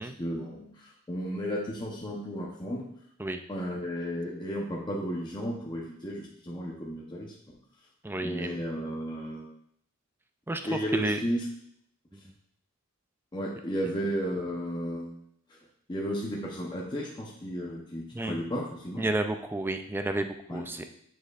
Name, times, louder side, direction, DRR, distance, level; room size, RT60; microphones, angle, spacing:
voice 1, 0.0-2.8 3.5-7.3 8.2-9.5 10.6-11.4 13.3-15.1 15.5-15.6 15.9-19.0 20.5-20.6, equal, 20° left, -3 dB, 0.8 m, -33 dB
voice 2, 8.0-8.6 10.5-11.2 12.1-12.3 18.1-18.4 19.0-20.8, right 2 dB, 10° right, 7 dB, 0.4 m, -31 dB
7.1 x 6.6 x 2.4 m, 0.69 s
head